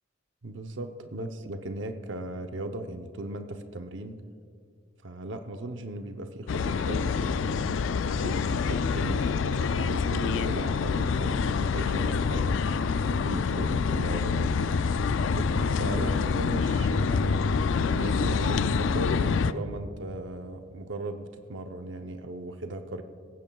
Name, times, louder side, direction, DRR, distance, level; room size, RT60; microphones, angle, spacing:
voice 1, 0.4-4.2 5.0-7.8 8.2-12.6 13.0-14.5 15.3-17.4 17.9-23.0, right 2 dB, 70° right, 6 dB, 0.7 m, -37 dB
sound 1, 6.5-19.5, left 5 dB, 75° left, 0.4 m, -26 dB
18.0 x 16.0 x 2.3 m, 2.2 s
head